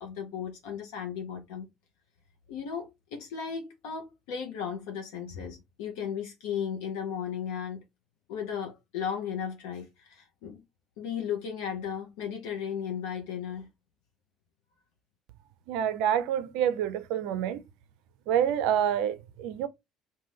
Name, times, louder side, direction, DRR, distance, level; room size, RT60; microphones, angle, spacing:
voice 1, 0.0-1.6 2.5-7.8 8.3-10.6 11.0-13.7, left 7 dB, 70° left, 0.5 m, -35 dB
voice 2, 15.7-17.6 18.3-19.7, right 9 dB, 70° right, 0.4 m, -27 dB
2.5 x 2.1 x 3.3 m
hypercardioid pair, 55°, 0 cm